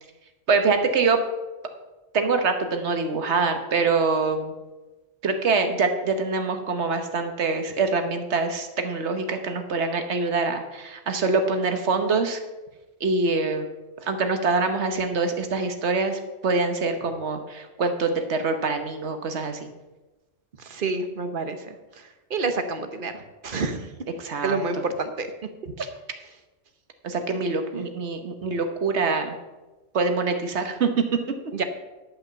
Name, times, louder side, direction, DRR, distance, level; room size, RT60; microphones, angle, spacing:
voice 1, 0.5-1.2 2.1-4.6 5.2-12.4 13.0-13.7 14.0-19.7 24.2-24.6 25.8-25.9 27.0-29.3 29.9-31.0, right 4 dB, 65° right, 7 dB, 1.3 m, -24 dB
voice 2, 20.6-23.9 24.4-25.3 27.7-27.9 31.5-31.6, right 3 dB, 50° right, 8 dB, 1.0 m, -29 dB
10.5 x 5.8 x 6.7 m, 1.1 s
omnidirectional pair, 1.2 m